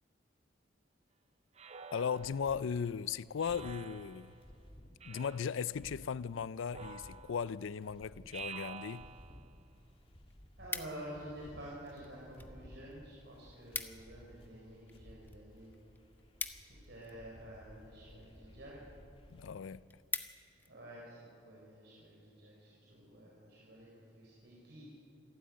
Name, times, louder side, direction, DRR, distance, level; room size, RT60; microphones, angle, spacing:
Speech synthesizer, 1.6-2.7 3.4-4.4 5.0-5.7 6.7-7.6 8.3-9.5, right 6 dB, 35° right, 0.6 m, -49 dB
voice 1, 1.9-4.3 5.1-9.1 19.3-19.8, left 6 dB, 90° left, 0.4 m, -37 dB
sound 1, 2.0-19.8, equal, 30° left, 2.0 m, -57 dB
sound 2, 10.1-11.3 12.0-12.5 12.8-12.9 13.2-13.3 13.5-14.2 14.5-17.4 18.1-18.4 18.9-19.0 19.4-19.5 19.7-20.7 21.2-21.4, left 4 dB, 10° left, 0.9 m, -43 dB
voice 2, 10.6-15.7 16.6-18.7 20.7-23.9 24.1-24.9, right 1 dB, 65° right, 4.5 m, -50 dB
26.5 x 12.5 x 9.5 m
head